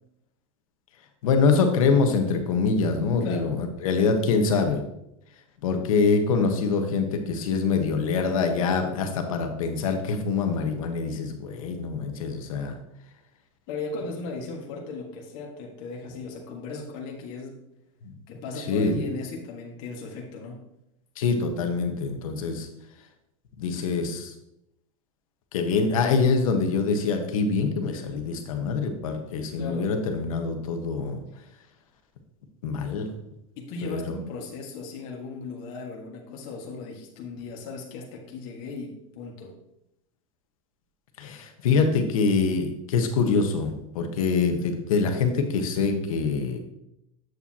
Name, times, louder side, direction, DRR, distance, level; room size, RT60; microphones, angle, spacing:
voice 1, 1.2-4.8 5.6-12.8 18.0-18.1 18.7-19.0 21.2-22.7 23.6-24.3 25.5-31.2 32.6-33.1 33.8-34.2 41.2-46.6, left 4 dB, 85° left, 5 dB, 1.3 m, -25 dB
voice 2, 3.2-3.5 13.7-17.6 18.3-20.6 29.6-29.9 33.6-39.5, left 3 dB, 55° left, 0 dB, 1.7 m, -37 dB
8.0 x 7.0 x 2.9 m, 0.84 s
supercardioid pair, 130°, 17 cm